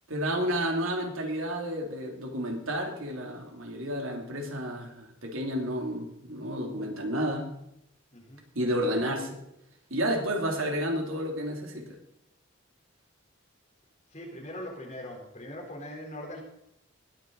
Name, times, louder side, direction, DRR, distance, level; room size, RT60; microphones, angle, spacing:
voice 1, 0.1-7.5 8.5-9.4 9.9-11.9, equal, 85° right, 2 dB, 2.9 m, -31 dB
voice 2, 8.1-8.4 14.1-16.4, left 1 dB, 35° left, 0 dB, 3.8 m, -41 dB
20.5 x 9.1 x 4.0 m, 0.81 s
head